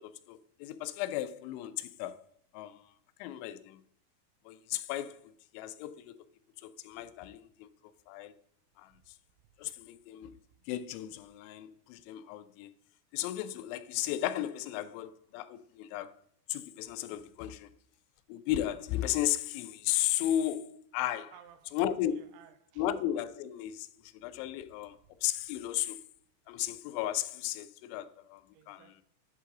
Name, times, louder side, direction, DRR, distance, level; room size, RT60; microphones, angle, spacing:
voice 1, 0.0-2.3 2.5-2.8 3.2-3.8 4.5-6.2 6.6-7.7 8.1-8.3 8.8-8.9 9.6-10.3 10.7-12.7 13.1-16.2 16.5-17.7 18.3-21.3 21.7-22.3 22.8-25.0 25.2-26.0 26.5-28.9, left 12 dB, 85° left, 2.9 m, -35 dB
voice 2, 21.3-21.8 22.1-22.9 28.5-29.0, right 10 dB, 90° right, 3.0 m, -56 dB
11.0 x 7.5 x 3.7 m
omnidirectional pair, 5.4 m